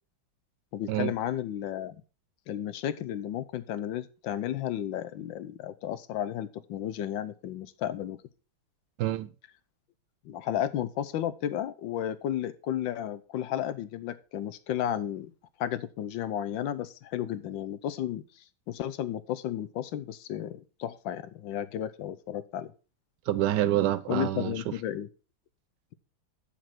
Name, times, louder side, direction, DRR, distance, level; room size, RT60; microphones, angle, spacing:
voice 1, 0.7-2.0 2.5-8.2 10.2-15.3 15.6-22.7 24.1-25.1, left 11 dB, 75° left, 1.4 m, -33 dB
voice 2, 9.0-9.3 23.3-24.5, right 13 dB, 70° right, 1.1 m, -27 dB
7.3 x 6.7 x 5.9 m
omnidirectional pair, 2.2 m